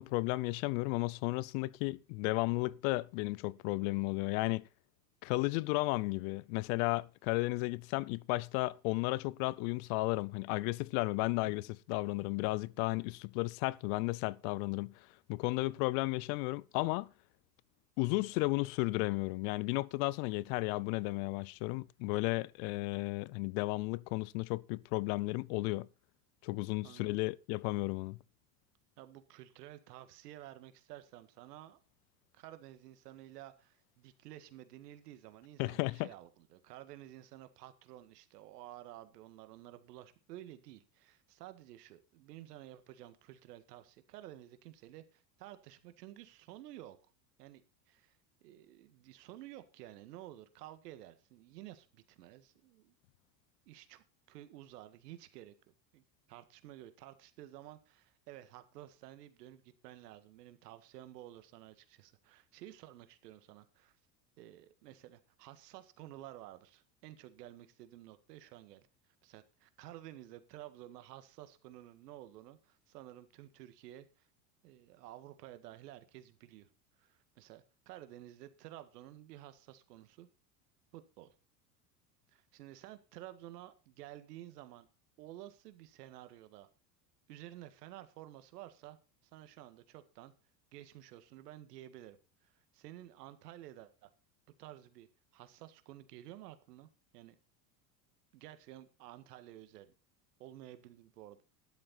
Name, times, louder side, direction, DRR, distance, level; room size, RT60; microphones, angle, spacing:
voice 1, 0.0-4.6 5.2-14.9 15.3-17.1 18.0-25.9 26.4-28.2 35.6-36.1, left 22 dB, 60° left, 0.7 m, -34 dB
voice 2, 26.8-27.2 29.0-31.8 32.3-47.0 47.4-47.6 47.9-48.2 48.4-52.9 53.6-55.5 55.9-63.9 64.4-68.9 69.2-74.3 74.6-76.7 77.0-80.3 80.9-81.3 82.3-84.9 85.2-86.7 87.3-89.0 89.3-90.3 90.7-92.2 92.4-94.1 94.6-95.1 95.3-97.3 98.3-99.9 100.4-101.4, right 14 dB, 75° right, 1.9 m, -52 dB
12.5 x 11.0 x 4.3 m
hypercardioid pair, 95°, 48 cm